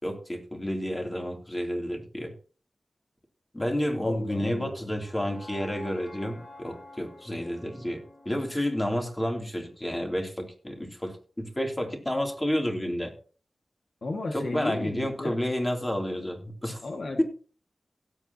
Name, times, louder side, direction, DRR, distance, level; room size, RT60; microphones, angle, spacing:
voice 1, 0.0-2.3 3.5-13.1 14.3-16.8, equal, 20° left, 2 dB, 3.0 m, -30 dB
sound 1, 3.7-9.9, left 2 dB, 55° left, 3.8 m, -50 dB
voice 2, 4.0-5.1 14.0-15.4 16.8-17.2, left 2 dB, 70° left, 3 dB, 1.9 m, -34 dB
17.0 x 8.2 x 2.9 m, 0.39 s
wide cardioid pair, 75°, 0 cm